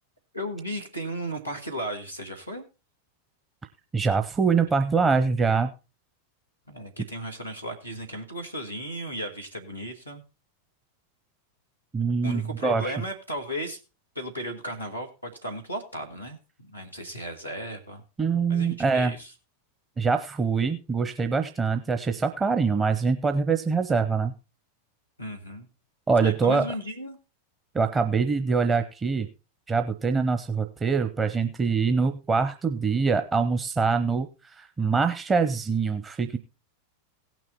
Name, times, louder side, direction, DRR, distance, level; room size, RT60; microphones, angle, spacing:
voice 1, 0.3-2.7 6.7-10.2 12.2-13.8 14.2-18.0 18.5-19.3 25.2-25.7 26.2-27.2, equal, 90° right, 2 dB, 2.1 m, -35 dB
voice 2, 3.9-5.7 11.9-12.9 18.2-19.1 20.0-24.3 26.1-26.7 27.7-29.3 29.7-34.3 34.6-36.4, right 5 dB, 15° right, 7 dB, 0.7 m, -24 dB
17.0 x 6.1 x 4.1 m, 0.30 s
figure-of-eight pair, 90°, 0 cm